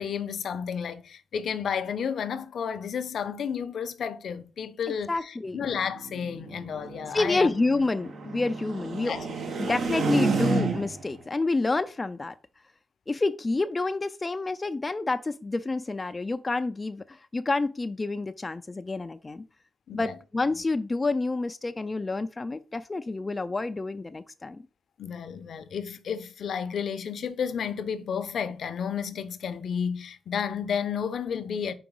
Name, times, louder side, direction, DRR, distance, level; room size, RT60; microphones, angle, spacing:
voice 1, 0.0-7.5 9.0-9.8 19.9-20.1 25.0-31.7, left 7 dB, 65° left, 0.6 m, -32 dB
voice 2, 5.1-5.6 7.1-9.1 9.6-12.3 13.1-19.4 19.9-24.6, left 3 dB, 25° left, 0.4 m, -28 dB
sound 1, 5.6-11.1, right 4 dB, 65° right, 1.3 m, -31 dB
4.9 x 3.8 x 5.3 m
cardioid pair, 80°, 0 cm